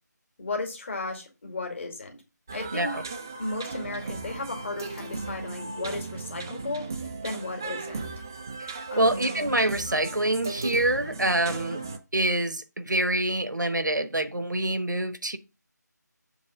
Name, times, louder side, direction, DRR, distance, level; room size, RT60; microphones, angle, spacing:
voice 1, 0.4-2.2 2.5-3.0 3.4-8.1 8.9-9.3, left 3 dB, 40° left, 2.0 m, -35 dB
sound 1, 2.5-12.0, right 3 dB, 10° right, 0.3 m, -36 dB
voice 2, 2.7-3.0 8.6-8.7 9.0-11.8 12.1-15.4, right 1 dB, 85° right, 1.0 m, -26 dB
7.1 x 3.2 x 6.1 m
figure-of-eight pair, 160°, 10 cm